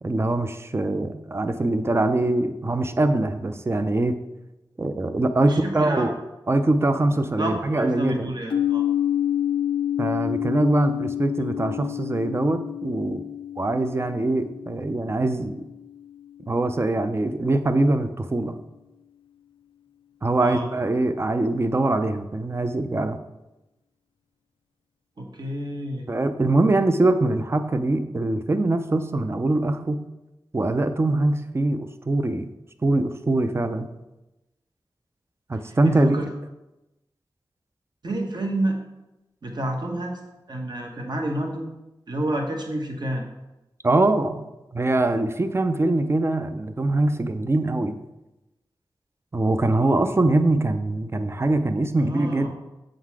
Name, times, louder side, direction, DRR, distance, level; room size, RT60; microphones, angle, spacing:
voice 1, 0.0-4.2 4.8-6.1 6.5-8.3 10.0-13.2 13.6-15.6 16.5-18.5 20.2-23.2 26.1-30.0 30.5-32.5 32.8-33.9 35.5-36.2 43.8-44.5 44.7-48.0 49.3-52.5, right 2 dB, 30° right, 9 dB, 0.5 m, -23 dB
voice 2, 5.4-6.1 7.0-8.8 11.8-11.9 20.4-20.7 25.2-26.1 35.6-36.3 38.0-38.8 39.4-40.2 40.5-41.7 42.1-43.2 52.0-52.6, right 1 dB, 55° right, 2 dB, 1.1 m, -29 dB
sound 1, 8.5-16.3, left 10 dB, 80° left, 0.3 m, -28 dB
7.2 x 3.9 x 4.7 m, 0.99 s
cardioid pair, 55°, 9 cm